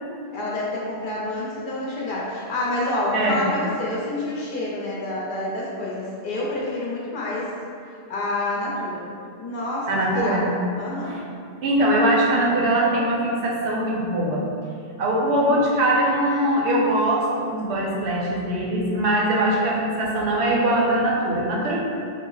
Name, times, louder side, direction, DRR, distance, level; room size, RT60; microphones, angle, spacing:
voice 1, 0.3-7.5 7.9-9.1 9.4-10.5 10.7-11.2, left 2 dB, 55° left, -5 dB, 0.6 m, -28 dB
voice 2, 9.9-10.4 11.6-14.4 15.0-21.8, right 1 dB, 70° right, -2 dB, 0.9 m, -21 dB
3.6 x 2.0 x 3.8 m, 2.5 s
omnidirectional pair, 1.2 m